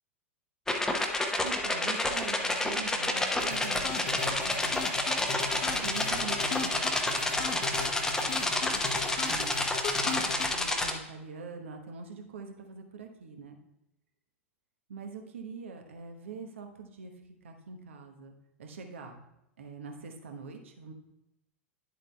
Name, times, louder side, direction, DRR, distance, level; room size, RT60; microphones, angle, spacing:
sound 1, 0.7-10.9, left 2 dB, 5° left, 0.8 m, -29 dB
voice 1, 1.4-4.9 5.5-9.5 9.8-13.6 14.9-19.2 19.6-20.9, right 4 dB, 65° right, 4 dB, 1.1 m, -44 dB
sound 2, 3.4-10.5, left 5 dB, 50° left, 1.0 m, -37 dB
10.5 x 8.1 x 2.3 m, 0.88 s
figure-of-eight pair, 90°, 7 cm